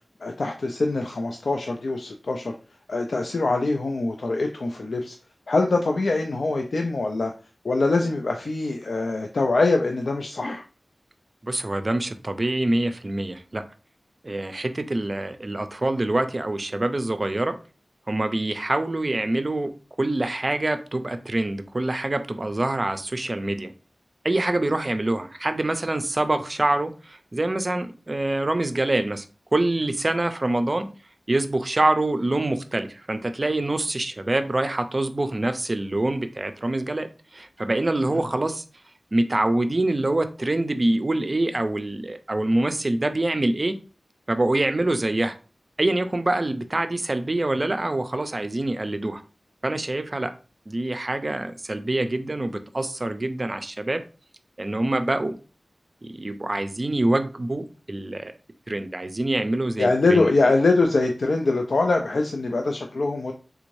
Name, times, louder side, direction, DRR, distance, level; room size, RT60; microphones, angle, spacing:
voice 1, 0.2-2.5 2.9-5.2 5.5-7.3 7.6-10.6 38.1-38.2 59.8-63.3, left 3 dB, 85° left, 3 dB, 0.3 m, -23 dB
voice 2, 11.4-13.6 14.2-17.5 18.1-19.7 20.0-23.7 24.2-29.3 29.5-30.9 31.3-38.6 39.1-43.8 44.3-45.3 45.8-49.2 49.6-50.3 50.7-54.0 54.6-55.4 56.0-58.3 58.7-60.3, right 2 dB, 40° right, 9 dB, 0.4 m, -25 dB
3.5 x 2.5 x 3.0 m, 0.35 s
wide cardioid pair, 70°, 0 cm